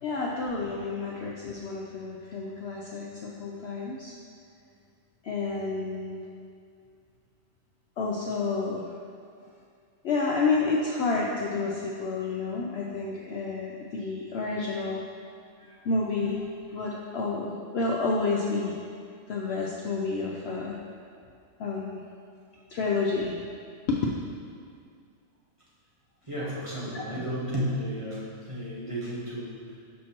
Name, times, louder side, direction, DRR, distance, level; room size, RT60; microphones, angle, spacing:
voice 1, 0.0-4.1 5.2-6.2 8.0-9.0 10.0-15.0 15.8-16.5 16.7-18.8 19.3-20.8 21.6-22.0 22.7-23.4 23.9-24.0 26.9-27.0, left 3 dB, 65° left, -2 dB, 0.7 m, -30 dB
voice 2, 26.3-29.8, equal, 25° right, -8 dB, 1.0 m, -33 dB
6.3 x 5.8 x 2.9 m, 2.3 s
omnidirectional pair, 1.5 m